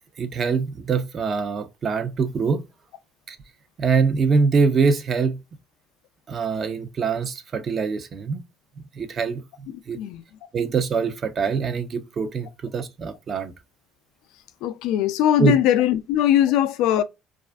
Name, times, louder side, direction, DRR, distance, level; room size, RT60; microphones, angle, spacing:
voice 1, 0.2-2.6 3.3-3.4 3.8-5.4 6.3-8.4 9.0-9.4 9.9-10.0 10.5-13.5 15.4-15.6, right 5 dB, 45° right, 0.5 m, -23 dB
voice 2, 14.6-17.0, left 11 dB, 80° left, 0.3 m, -20 dB
2.4 x 2.4 x 2.2 m
supercardioid pair, 85°, 0 cm